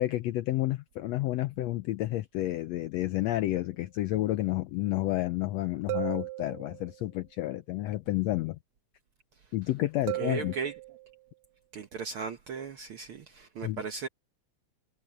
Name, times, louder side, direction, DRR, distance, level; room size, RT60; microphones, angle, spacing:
voice 1, 0.0-8.6 9.5-10.5 13.6-13.8, left 16 dB, 75° left, 1.6 m, -30 dB
sound 1, 3.5-3.6 5.9-7.0 10.1-11.2, right 20 dB, 90° right, 1.5 m, -36 dB
voice 2, 10.2-10.7 11.7-14.1, right 5 dB, 60° right, 1.4 m, -37 dB
omnidirectional pair, 3.6 m